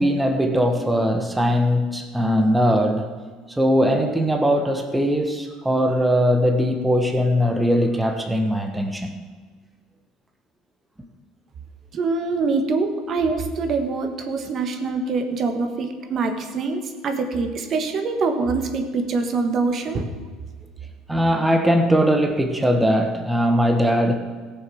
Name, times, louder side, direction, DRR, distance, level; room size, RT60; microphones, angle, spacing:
voice 1, 0.0-3.1 3.6-9.2 21.1-24.1, equal, 10° right, 4 dB, 1.3 m, -20 dB
voice 2, 11.9-20.1, right 4 dB, 45° right, 6 dB, 1.5 m, -24 dB
15.0 x 7.0 x 6.3 m, 1.5 s
supercardioid pair, 95°, 0 cm